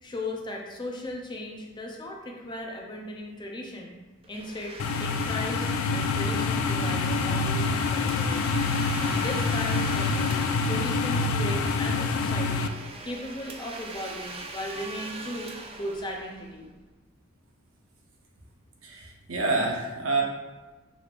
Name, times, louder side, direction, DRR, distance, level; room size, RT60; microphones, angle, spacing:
voice 1, 0.0-3.9 4.3-8.7 9.0-10.4 10.7-12.7 13.0-15.5 15.8-16.7, left 1 dB, 20° left, 0 dB, 0.5 m, -37 dB
Domestic sounds home sounds, 4.2-16.8, right 3 dB, 30° right, 0.3 m, -42 dB
sound 1, 4.8-12.7, left 4 dB, 80° left, 0.3 m, -26 dB
voice 2, 18.8-20.2, right 3 dB, 80° right, 0 dB, 0.7 m, -27 dB
5.1 x 3.2 x 2.4 m, 1.2 s
head